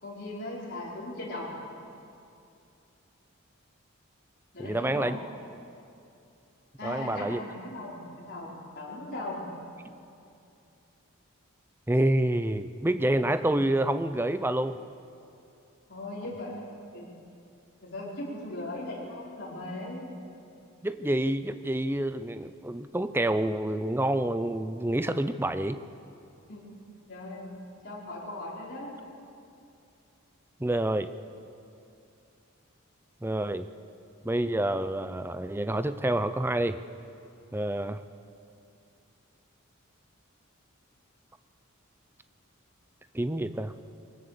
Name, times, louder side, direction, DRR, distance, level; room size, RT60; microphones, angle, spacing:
voice 1, 0.0-1.5 4.5-5.1 6.8-9.5 15.9-16.6 16.9-17.1 17.8-20.1 26.5-26.7 27.1-27.6 27.8-28.9, left 1 dB, 50° left, -5 dB, 5.0 m, -38 dB
voice 2, 4.6-5.2 6.8-7.4 11.9-14.8 20.8-25.8 30.6-31.1 33.2-33.7 34.2-36.8 37.5-38.0 43.1-43.7, right 1 dB, 10° right, 11 dB, 0.5 m, -28 dB
23.0 x 17.0 x 6.8 m, 2.6 s
head